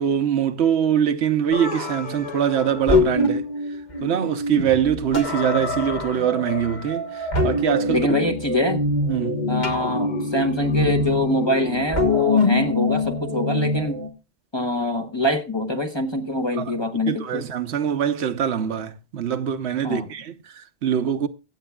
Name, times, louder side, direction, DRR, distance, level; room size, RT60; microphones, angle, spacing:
voice 1, 0.0-3.5 4.0-8.1 9.1-9.5 16.6-21.3, right 9 dB, 85° right, 1.1 m, -23 dB
sound 1, 1.5-14.1, left 2 dB, 45° left, 1.5 m, -25 dB
voice 2, 7.9-8.8 9.5-14.0 14.5-17.5 19.8-20.0, left 1 dB, 25° left, 1.0 m, -24 dB
22.5 x 8.3 x 2.3 m
omnidirectional pair, 1.1 m